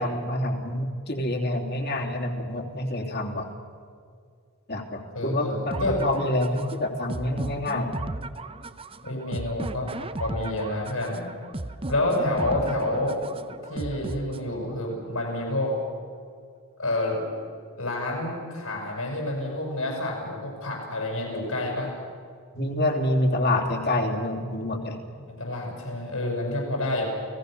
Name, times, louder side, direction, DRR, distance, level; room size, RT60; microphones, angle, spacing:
voice 1, 0.0-3.5 4.7-7.9 22.5-25.0, left 1 dB, 45° left, 2 dB, 3.0 m, -27 dB
voice 2, 5.1-6.0 9.0-9.9 10.2-11.3 11.9-13.2 13.7-15.8 16.8-17.2 17.8-21.9 25.1-27.0, left 1 dB, 70° left, -1 dB, 7.4 m, -28 dB
sound 1, 5.7-14.7, right 2 dB, 25° right, 0.7 m, -36 dB
30.0 x 18.5 x 6.8 m, 2.2 s
head